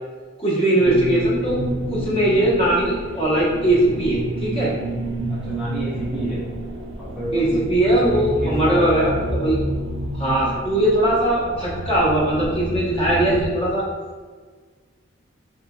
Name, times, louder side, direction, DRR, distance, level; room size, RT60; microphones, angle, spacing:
voice 1, 0.4-1.6 1.9-4.7 7.3-9.6 10.1-13.8, right 1 dB, 30° left, -6 dB, 0.8 m, -20 dB
sound 1, 0.8-13.5, right 1 dB, 60° right, 0.4 m, -29 dB
voice 2, 5.3-6.4 7.0-9.1, equal, 5° right, -9 dB, 0.5 m, -29 dB
2.9 x 2.7 x 2.2 m, 1.5 s
head